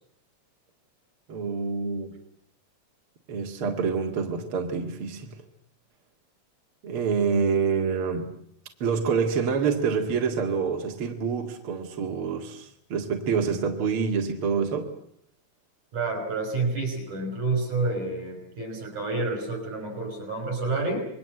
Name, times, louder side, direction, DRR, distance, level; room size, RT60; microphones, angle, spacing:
voice 1, 1.3-2.1 3.3-5.4 6.8-8.3 8.8-14.9, right 5 dB, 50° right, 3 dB, 2.8 m, -27 dB
voice 2, 15.9-21.1, right 3 dB, 80° right, 6 dB, 7.4 m, -29 dB
27.5 x 21.5 x 7.8 m, 0.69 s
omnidirectional pair, 3.4 m